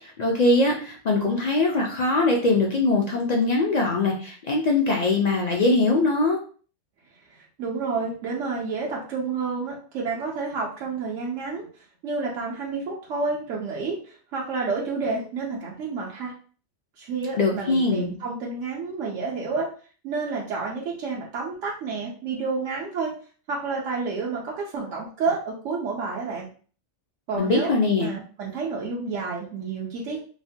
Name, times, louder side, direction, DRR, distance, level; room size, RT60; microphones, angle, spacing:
voice 1, 0.0-6.4 17.4-18.1 27.4-28.1, left 2 dB, 60° left, 0 dB, 0.4 m, -22 dB
voice 2, 7.3-16.3 17.0-19.7 20.0-23.1 23.5-26.5 27.3-30.2, right 4 dB, 85° right, -2 dB, 1.0 m, -30 dB
3.1 x 2.1 x 2.6 m, 0.40 s
omnidirectional pair, 1.2 m